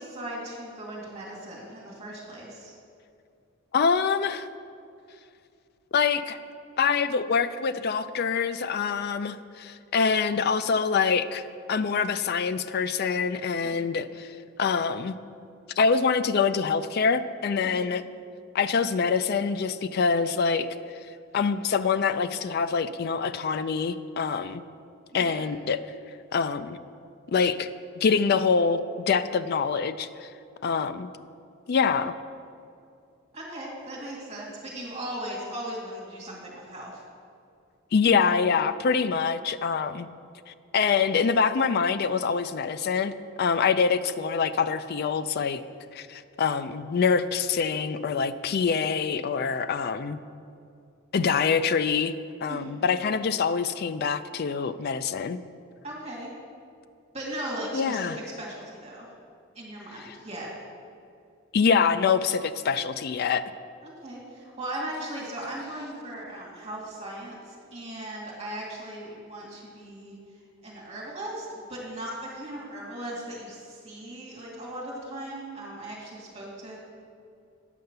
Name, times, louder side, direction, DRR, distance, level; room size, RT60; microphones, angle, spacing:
voice 1, 0.0-2.7 13.6-13.9 17.6-17.9 25.1-25.4 33.3-37.0 52.5-52.9 55.8-56.3 57.1-59.1 59.5-60.5 63.8-70.1 70.6-76.8, right 1 dB, 30° right, -4 dB, 2.1 m, -38 dB
voice 2, 3.7-4.5 5.9-6.4 6.8-11.4 11.7-14.3 14.6-15.2 15.8-18.0 18.5-20.7 21.3-24.6 25.1-25.8 26.3-26.8 27.3-27.7 28.0-30.3 30.6-31.1 31.7-32.1 37.9-40.1 40.5-43.1 43.4-45.6 45.9-50.2 51.1-52.1 52.4-55.4 57.7-58.2 61.5-63.4, left 5 dB, 45° left, 12 dB, 0.3 m, -25 dB
9.3 x 5.7 x 6.6 m, 2.5 s
head